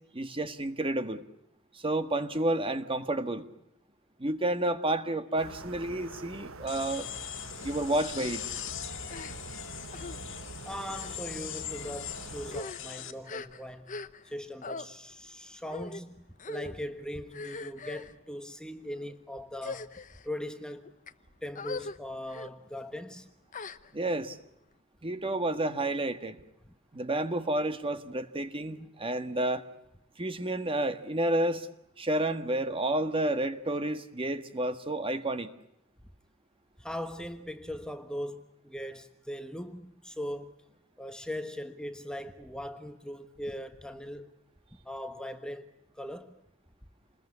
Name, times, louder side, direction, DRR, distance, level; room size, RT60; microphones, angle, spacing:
voice 1, 0.1-1.2 1.7-3.5 4.2-7.1 7.6-8.4 23.9-24.4 25.0-26.4 26.9-29.6 30.2-31.7 32.0-35.5, right 1 dB, 25° right, 1.6 m, -30 dB
sound 1, 5.4-12.6, right 3 dB, 80° right, 1.5 m, -45 dB
sound 2, 6.7-13.1, left 11 dB, 65° left, 2.1 m, -41 dB
sound 3, 8.2-8.4 9.1-9.6 9.9-10.2 10.9-11.2 11.9-12.0 12.4-14.3 14.6-14.9 15.7-16.0 16.4-16.8 17.3-18.1 18.8-19.1 19.6-20.3 20.8-21.1 21.6-22.0 22.3-22.5 23.5-24.2, left 3 dB, 40° left, 1.0 m, -41 dB
voice 2, 10.6-14.0 14.2-19.9 20.2-20.9 21.4-23.3 36.8-40.5 41.0-44.3 44.8-45.7 45.9-46.3, equal, 5° left, 1.3 m, -40 dB
28.0 x 21.5 x 9.7 m
head